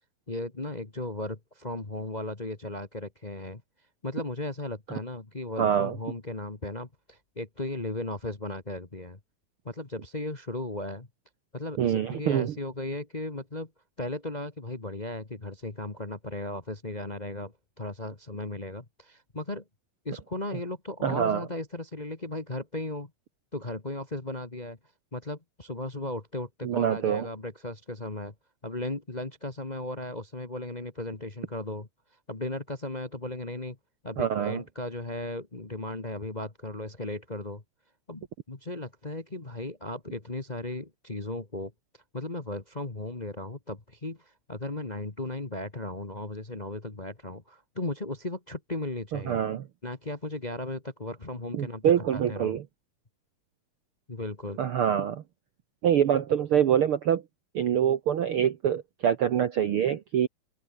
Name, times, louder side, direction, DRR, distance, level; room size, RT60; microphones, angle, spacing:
voice 1, 0.3-3.6 4.0-9.2 9.6-11.1 11.5-13.7 14.0-19.6 20.0-23.1 23.5-24.8 25.1-28.3 28.6-31.9 32.3-33.8 34.0-37.6 38.1-41.7 42.1-49.4 49.8-51.8 52.1-52.6 54.1-54.7, left 2 dB, 40° left, 0.5 m, -36 dB
voice 2, 5.6-6.0 11.8-12.5 21.0-21.4 26.6-27.3 34.2-34.6 49.1-49.6 51.5-52.6 54.6-55.2 55.8-57.2 57.5-60.3, right 9 dB, 80° right, 1.2 m, -25 dB
open air
omnidirectional pair, 4.0 m